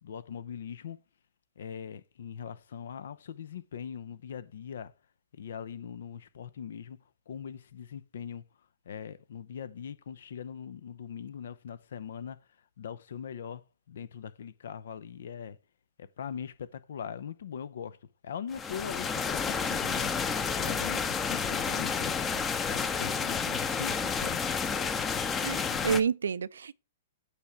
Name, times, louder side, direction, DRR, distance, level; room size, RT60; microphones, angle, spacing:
voice 1, 0.0-1.0 1.6-4.9 5.3-7.0 7.3-8.4 8.9-12.4 12.8-15.6 16.0-18.0 18.2-20.1 20.6-22.3 22.6-24.5, left 8 dB, 70° left, 0.6 m, -41 dB
sound 1, 18.5-26.0, left 6 dB, 20° left, 0.7 m, -30 dB
voice 2, 25.4-26.7, right 6 dB, 80° right, 0.5 m, -29 dB
8.2 x 3.4 x 6.1 m
hypercardioid pair, 125°, 0 cm